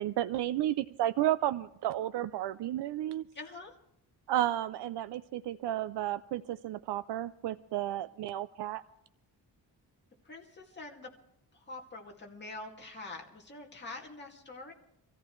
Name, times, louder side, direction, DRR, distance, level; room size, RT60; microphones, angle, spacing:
voice 1, 0.0-3.3 4.3-8.8, right 13 dB, 85° right, 13 dB, 0.5 m, -32 dB
voice 2, 3.3-3.7 10.2-11.1 11.7-14.7, left 2 dB, 25° left, -1 dB, 2.2 m, -45 dB
25.0 x 14.5 x 3.1 m, 0.79 s
wide cardioid pair, 180°, 40 cm